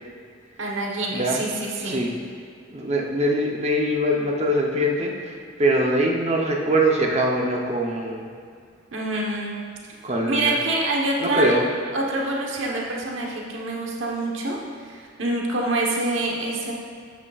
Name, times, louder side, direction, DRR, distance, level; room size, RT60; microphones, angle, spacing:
voice 1, 0.6-2.0 8.9-9.6 10.3-11.5 11.9-16.7, right 2 dB, 75° right, -2 dB, 1.1 m, -26 dB
voice 2, 2.7-5.3 5.6-8.3 10.0-10.5 11.2-11.6, right 1 dB, 35° right, 0 dB, 0.8 m, -22 dB
9.7 x 8.1 x 2.4 m, 2.2 s
head